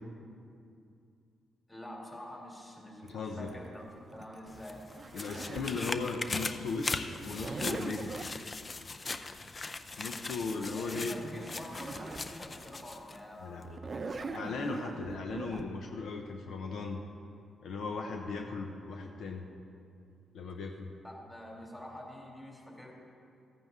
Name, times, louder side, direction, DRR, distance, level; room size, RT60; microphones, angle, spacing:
voice 1, 1.7-4.8 5.3-5.5 10.8-14.4 21.0-22.9, left 1 dB, 15° left, -1 dB, 3.0 m, -46 dB
voice 2, 3.1-3.5 5.1-8.2 10.0-11.2 13.4-13.8 14.3-17.0 17.6-19.4 20.3-20.9, left 4 dB, 75° left, 3 dB, 0.7 m, -37 dB
Zipper (clothing), 3.1-5.8 7.1-8.4 11.0-11.1 11.3-12.3 12.8-12.9 13.6-15.6, right 4 dB, 45° right, 0.6 m, -41 dB
sound 1, 4.5-13.2 13.6-13.7, left 3 dB, 35° left, 0.5 m, -40 dB
14.0 x 9.1 x 3.6 m, 2.5 s
supercardioid pair, 60°, 0 cm